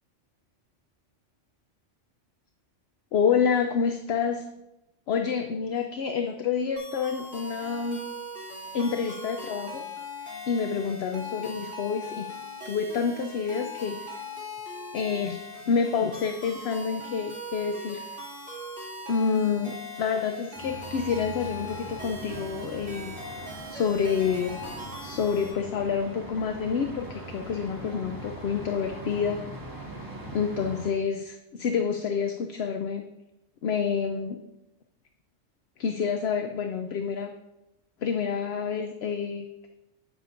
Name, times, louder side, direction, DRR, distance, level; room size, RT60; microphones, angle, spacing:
voice 1, 3.1-4.5 5.1-8.0 8.7-9.8 10.2-12.3 12.6-14.2 14.9-15.4 15.7-18.2 19.1-23.1 23.7-24.6 25.0-29.5 30.3-33.0 33.6-34.4 35.8-37.3 38.0-39.7, left 6 dB, 65° left, 6 dB, 0.8 m, -28 dB
sound 1, 6.8-25.5, left 1 dB, 70° right, 2.8 m, -40 dB
sound 2, 20.5-30.9, right 2 dB, 15° right, 1.6 m, -41 dB
10.0 x 8.3 x 2.5 m, 0.92 s
omnidirectional pair, 1.2 m